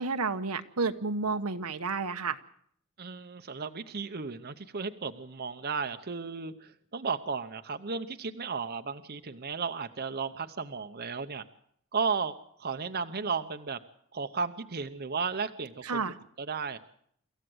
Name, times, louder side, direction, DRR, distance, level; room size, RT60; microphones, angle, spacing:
voice 1, 0.0-2.4 15.8-16.1, right 4 dB, 80° right, 8 dB, 1.2 m, -31 dB
voice 2, 3.0-11.4 11.9-13.8 14.1-16.0 16.4-16.8, right 5 dB, 45° right, 9 dB, 0.8 m, -34 dB
25.5 x 14.5 x 7.9 m, 0.68 s
head